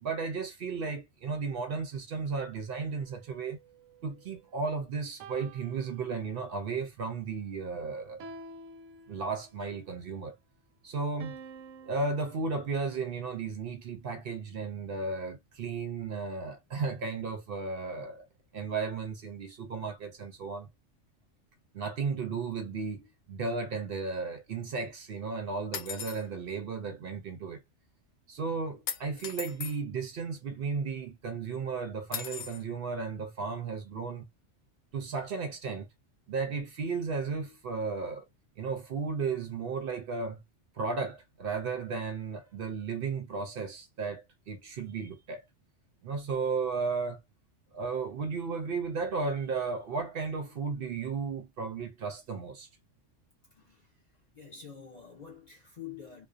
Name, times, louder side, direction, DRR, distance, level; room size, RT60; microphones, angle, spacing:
voice 1, 0.0-3.6 4.0-8.2 9.1-10.4 10.8-11.4 11.9-18.3 18.5-20.7 21.7-27.6 28.3-34.3 34.9-35.9 36.3-38.3 38.6-40.4 40.7-45.4 46.0-47.2 47.7-52.7, right 4 dB, 60° right, 0.7 m, -34 dB
sound 1, 2.9-4.6 5.2-6.6 8.2-9.6 11.2-12.7, right 3 dB, 85° right, 0.9 m, -50 dB
sound 2, 25.7-26.2 28.9-29.8 32.1-32.6, left 7 dB, 75° left, 0.9 m, -37 dB
voice 2, 53.5-56.3, left 8 dB, 50° left, 0.6 m, -48 dB
2.5 x 2.0 x 2.4 m
omnidirectional pair, 1.2 m